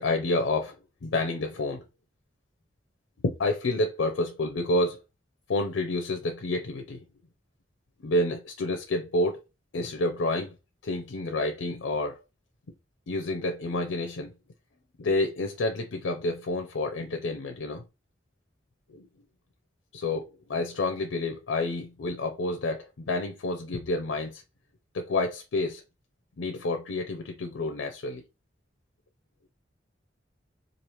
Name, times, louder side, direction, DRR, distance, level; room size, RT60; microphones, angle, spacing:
voice 1, 0.0-1.8 3.2-5.0 5.5-7.0 8.0-9.4 9.7-10.5 10.8-12.2 13.1-14.3 15.0-17.8 18.9-19.1 19.9-24.4 24.9-25.8 26.4-28.2, left 2 dB, 90° left, 0.5 m, -29 dB
3.2 x 2.5 x 2.9 m
head